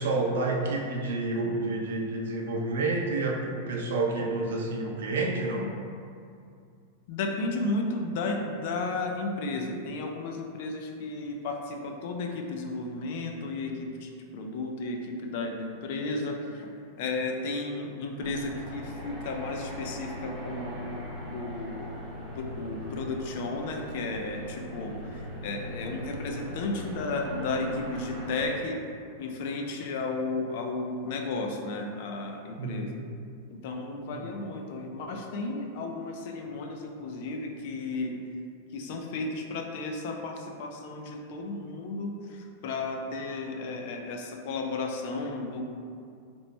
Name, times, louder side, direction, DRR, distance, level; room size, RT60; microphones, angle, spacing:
voice 1, 0.0-5.7 32.6-32.9, right 2 dB, 85° right, 0 dB, 0.5 m, -29 dB
voice 2, 7.1-16.7 17.0-21.9 22.3-28.8 29.2-32.9 33.5-38.2 38.7-45.6, left 3 dB, 50° left, 2 dB, 0.4 m, -33 dB
sound 1, 18.2-28.5, equal, 20° right, 0.7 m, -40 dB
3.0 x 2.2 x 4.0 m, 2.4 s
supercardioid pair, 165°, 0 cm